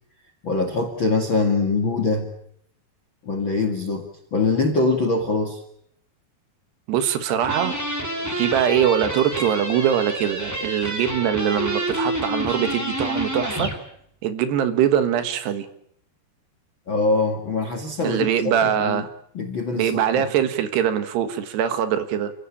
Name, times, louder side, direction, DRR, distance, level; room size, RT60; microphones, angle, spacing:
voice 1, 0.4-2.3 3.2-5.6 16.9-18.2 18.5-19.1 19.3-20.3, left 3 dB, 45° left, 7 dB, 1.6 m, -23 dB
voice 2, 6.9-7.8 8.4-13.7 14.2-15.7 18.0-19.1 19.8-22.3, right 9 dB, 75° right, 10 dB, 3.4 m, -22 dB
sound 1, 7.4-13.8, equal, 5° right, 1.6 m, -28 dB
29.0 x 16.0 x 8.5 m, 0.70 s
omnidirectional pair, 5.0 m